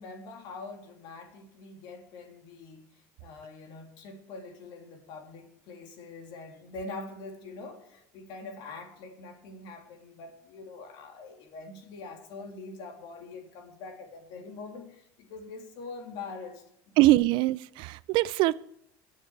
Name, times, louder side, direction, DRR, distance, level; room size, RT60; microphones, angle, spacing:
voice 1, 0.0-16.9, left 3 dB, 65° left, 3.3 m, -44 dB
voice 2, 17.0-18.7, right 17 dB, 65° right, 0.4 m, -23 dB
22.0 x 7.4 x 4.8 m
supercardioid pair, 105°, 9 cm